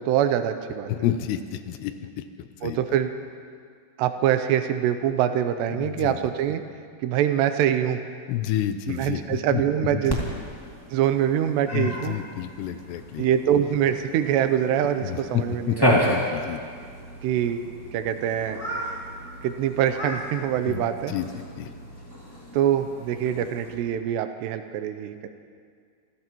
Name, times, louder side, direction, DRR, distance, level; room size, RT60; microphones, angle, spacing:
voice 1, 0.0-0.9 2.6-3.1 4.0-6.6 7.0-8.0 8.9-10.2 10.9-12.2 13.2-16.1 17.2-17.6 17.9-18.6 19.4-21.1 22.5-25.3, right 10 dB, 85° right, 8 dB, 2.7 m, -24 dB
voice 2, 0.9-2.8 5.7-6.2 8.3-9.6 9.9-10.2 11.7-13.3 15.0-16.6 20.7-21.7, left 11 dB, 80° left, 9 dB, 2.7 m, -30 dB
Cat, 10.1-23.7, equal, 40° left, 0.3 m, -32 dB
26.5 x 15.5 x 3.0 m, 2.1 s
omnidirectional pair, 5.1 m